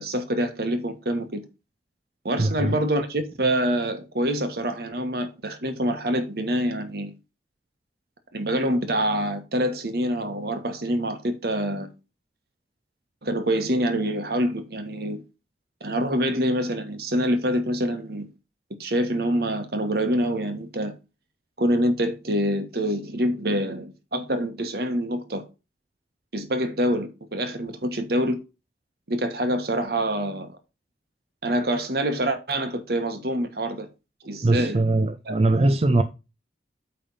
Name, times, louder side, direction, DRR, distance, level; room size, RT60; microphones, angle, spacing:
voice 1, 0.0-1.4 2.2-7.1 8.3-11.9 13.2-15.2 15.8-18.3 18.8-20.9 21.6-25.4 26.3-28.4 29.1-30.5 31.4-33.9 34.2-34.8 35.2-35.3, equal, 60° right, 1.3 m, -26 dB
voice 2, 2.4-2.8 34.4-36.0, right 2 dB, 35° right, 0.5 m, -21 dB
8.7 x 3.5 x 5.4 m
head